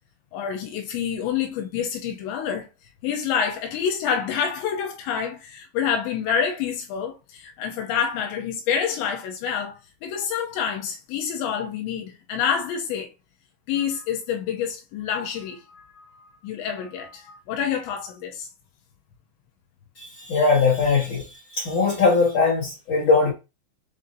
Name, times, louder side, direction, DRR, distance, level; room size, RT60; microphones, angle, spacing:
voice 1, 0.3-2.7 3.0-13.1 13.7-18.5, left 7 dB, 85° left, 3.0 m, -28 dB
voice 2, 20.0-21.2 21.5-23.3, left 4 dB, 55° left, 1.9 m, -20 dB
7.0 x 2.7 x 2.7 m
omnidirectional pair, 5.2 m